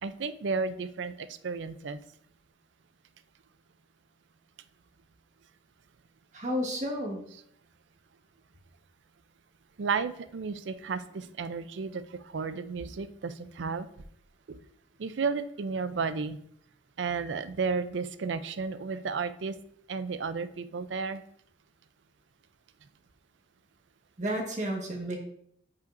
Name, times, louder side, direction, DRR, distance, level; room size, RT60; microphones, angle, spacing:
voice 1, 0.0-2.0 9.8-13.9 14.5-14.6 15.0-16.4 17.0-19.5 19.9-21.2, right 5 dB, 80° right, 12 dB, 0.5 m, -33 dB
voice 2, 6.3-7.2 24.2-25.2, equal, 40° right, 1 dB, 1.4 m, -31 dB
10.0 x 5.5 x 2.6 m, 0.69 s
head